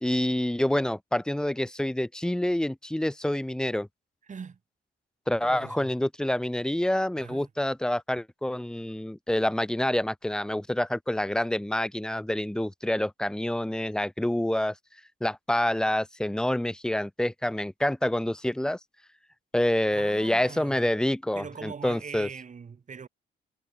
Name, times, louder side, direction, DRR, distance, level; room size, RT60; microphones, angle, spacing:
voice 1, 0.0-3.9 5.3-14.7 15.2-18.8 19.5-22.3, left 1 dB, 5° left, 0.6 m, -27 dB
voice 2, 4.3-4.6 5.4-6.0 7.2-7.5 19.9-20.9 21.3-23.1, right 6 dB, 40° right, 2.4 m, -42 dB
cardioid pair, 90°, 20 cm